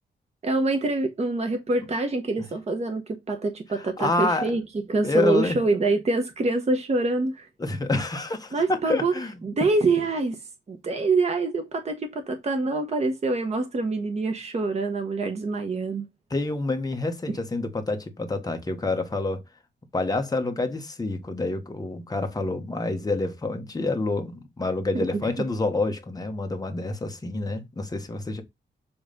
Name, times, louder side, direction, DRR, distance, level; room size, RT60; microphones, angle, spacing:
voice 1, 0.4-4.6 4.9-7.5 8.5-9.1 9.4-10.4 10.7-16.0 24.9-25.1, right 3 dB, 35° right, 1.1 m, -25 dB
voice 2, 3.8-4.5 5.0-5.6 7.6-9.4 16.3-19.4 19.9-28.4, left 2 dB, 20° left, 1.1 m, -28 dB
7.1 x 3.2 x 5.2 m
wide cardioid pair, 175°, 19 cm